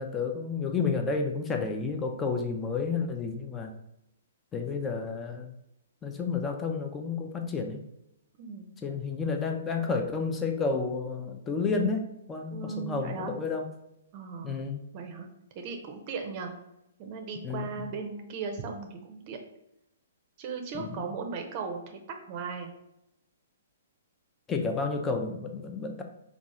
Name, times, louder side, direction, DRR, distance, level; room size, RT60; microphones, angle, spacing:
voice 1, 0.0-3.7 4.5-5.5 6.0-7.8 8.8-13.7 14.4-14.8 17.4-17.9 20.7-21.0 24.5-26.0, left 4 dB, 15° left, 4 dB, 0.6 m, -31 dB
voice 2, 8.4-8.7 12.5-13.3 14.1-14.6 14.9-15.3 15.5-16.5 17.0-19.4 20.4-22.0 22.3-22.7, right 5 dB, 40° right, 4 dB, 0.6 m, -37 dB
3.5 x 2.4 x 4.1 m, 0.83 s
figure-of-eight pair, 125°, 0 cm